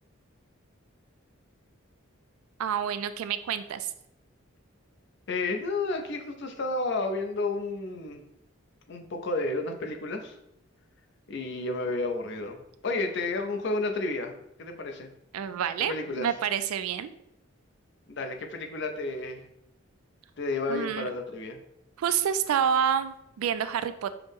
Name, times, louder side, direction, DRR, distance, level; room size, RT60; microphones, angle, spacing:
voice 1, 2.6-3.9 15.3-17.1 20.7-21.1 22.0-24.1, right 8 dB, 85° right, 12 dB, 0.3 m, -28 dB
voice 2, 5.3-8.2 8.9-10.4 11.3-15.1 15.9-16.3 18.1-19.5 20.4-21.6, left 2 dB, 55° left, 4 dB, 0.5 m, -31 dB
5.7 x 2.0 x 3.5 m, 0.80 s
head